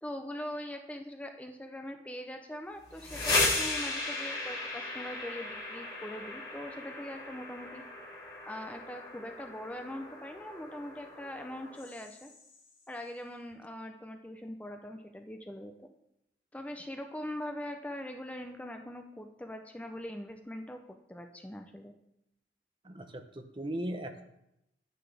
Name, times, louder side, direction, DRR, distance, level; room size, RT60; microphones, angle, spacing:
voice 1, 0.0-7.8 8.4-12.3 12.9-15.9 16.5-21.9, left 1 dB, 10° left, 5 dB, 0.5 m, -42 dB
sound 1, 2.8-12.6, left 3 dB, 25° left, 3.4 m, -36 dB
voice 2, 22.8-24.2, right 1 dB, 30° right, 7 dB, 0.8 m, -38 dB
9.9 x 9.6 x 3.4 m, 0.83 s
head